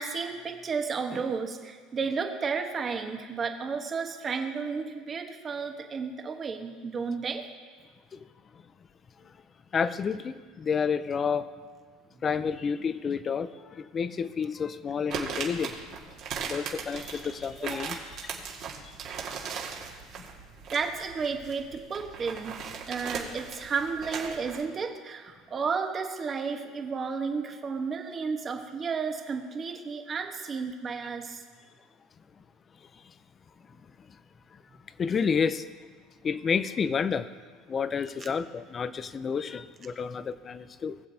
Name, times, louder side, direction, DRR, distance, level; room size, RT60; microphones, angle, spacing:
voice 1, 0.0-7.5 17.6-17.9 20.7-31.4 38.2-38.3, right 5 dB, 30° right, 4 dB, 1.1 m, -32 dB
voice 2, 9.7-11.5 12.2-15.7 16.4-18.4 18.8-19.3 20.2-20.3 35.0-35.7 36.2-37.3 37.7-41.0, left 6 dB, 30° left, 14 dB, 0.5 m, -30 dB
sound 1, 15.1-24.6, right 6 dB, 55° right, 1.8 m, -38 dB
20.0 x 7.2 x 2.8 m, 1.5 s
supercardioid pair, 120°, 0 cm